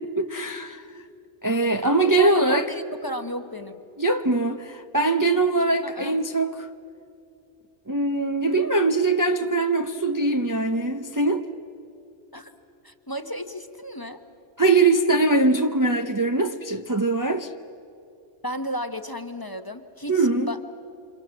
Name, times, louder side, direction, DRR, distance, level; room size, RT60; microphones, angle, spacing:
voice 1, 0.2-0.8 1.4-2.7 4.0-6.7 7.9-11.5 14.6-17.5 20.1-20.5, right 2 dB, 20° right, 0.7 m, -22 dB
voice 2, 2.2-3.7 5.8-6.2 12.3-12.5 12.8-14.2 18.4-20.6, equal, 20° left, 1.2 m, -33 dB
29.0 x 27.0 x 7.6 m
omnidirectional pair, 1.2 m